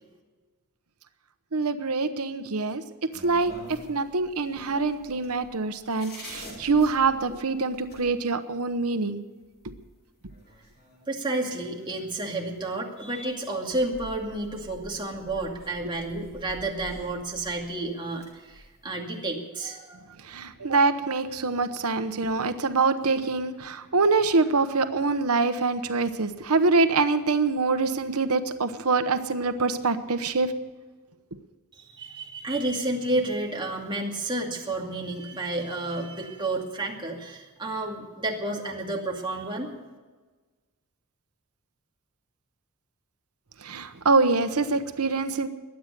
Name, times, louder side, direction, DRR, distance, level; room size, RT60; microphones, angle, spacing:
voice 1, 1.5-2.8 3.2-9.2 20.2-30.5 43.6-45.5, right 3 dB, 80° right, 10 dB, 1.0 m, -25 dB
sound 1, 3.1-8.1 9.4-9.5 9.8-9.9 10.3-11.1 11.4-12.2 13.2-13.3 13.7-17.8 18.1-18.8, equal, 50° left, 6.9 m, -47 dB
voice 2, 11.1-20.0 31.7-39.7, right 2 dB, 20° right, -1 dB, 2.4 m, -31 dB
22.0 x 9.2 x 6.7 m, 1.3 s
head